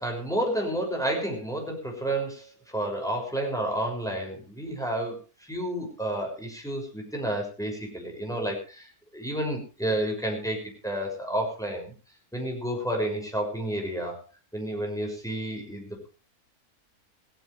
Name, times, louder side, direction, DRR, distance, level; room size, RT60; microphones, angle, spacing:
voice 1, 0.0-5.2 5.5-10.6 10.8-11.9 12.3-14.2 14.5-16.1, right 1 dB, ahead, 1 dB, 6.3 m, -30 dB
18.5 x 16.5 x 3.3 m, 0.34 s
omnidirectional pair, 1.6 m